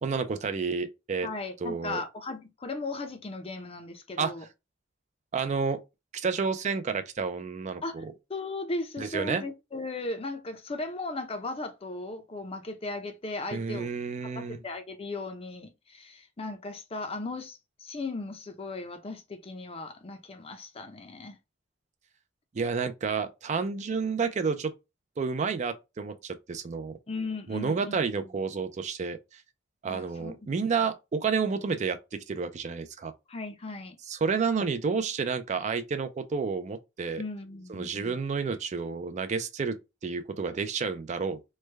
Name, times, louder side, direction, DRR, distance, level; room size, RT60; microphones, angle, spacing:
voice 1, 0.0-1.3 1.6-2.0 4.2-4.3 5.3-5.8 6.1-8.1 9.0-9.4 13.5-14.6 22.5-24.7 25.2-27.0 27.5-29.4 29.8-33.1 34.1-37.2 37.7-39.8 40.0-41.4, right 5 dB, 35° right, 0.4 m, -30 dB
voice 2, 1.2-4.4 7.8-8.0 8.3-13.9 14.2-21.4 27.1-28.0 29.8-30.3 33.3-34.0 37.2-38.2, left 2 dB, 30° left, 0.5 m, -37 dB
3.2 x 2.2 x 3.2 m
head